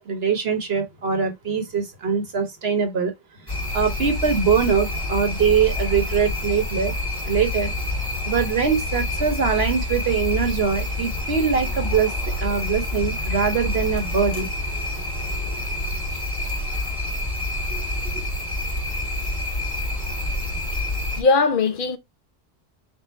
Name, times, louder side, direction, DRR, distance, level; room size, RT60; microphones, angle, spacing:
voice 1, 0.1-3.1 3.7-6.9 7.2-7.7 8.2-12.1 12.4-14.5, right 6 dB, 70° right, 1.4 m, -22 dB
sound 1, 3.5-21.2, left 1 dB, 20° left, 2.3 m, -27 dB
voice 2, 17.7-18.2 21.2-22.0, left 4 dB, 55° left, 0.8 m, -21 dB
4.6 x 2.6 x 4.2 m
omnidirectional pair, 1.1 m